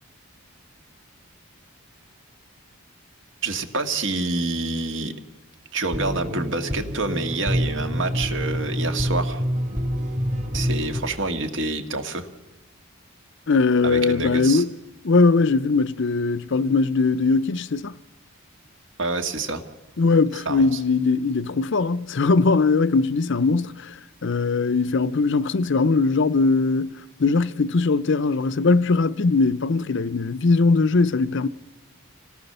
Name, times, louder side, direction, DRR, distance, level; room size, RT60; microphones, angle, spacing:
voice 1, 3.4-5.1 5.7-9.4 10.5-12.3 13.8-14.6 19.0-19.6 20.5-20.7, right 3 dB, 60° right, 1.9 m, -27 dB
sound 1, 5.9-11.0, equal, 35° right, 2.7 m, -26 dB
voice 2, 13.5-14.7 15.0-17.9 20.0-23.9 24.2-26.9 27.2-31.5, left 3 dB, 55° left, 0.6 m, -20 dB
26.5 x 17.5 x 6.8 m
head